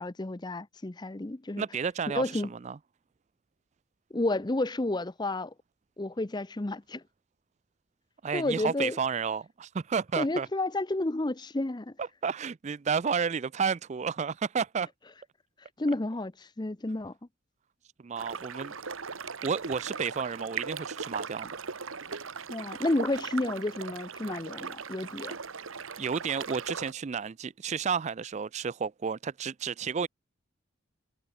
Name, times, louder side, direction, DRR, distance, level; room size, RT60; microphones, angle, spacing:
voice 1, 0.0-1.6 2.1-2.5 4.1-5.5 6.0-7.0 8.3-9.0 10.2-11.9 15.8-17.1 22.5-25.3, left 2 dB, 20° left, 0.6 m, -31 dB
voice 2, 1.6-2.8 8.2-10.5 12.0-14.9 18.0-19.0 19.4-21.6 26.0-30.1, right 6 dB, 35° right, 0.4 m, -31 dB
sound 1, 18.2-26.9, right 5 dB, 75° right, 1.3 m, -39 dB
head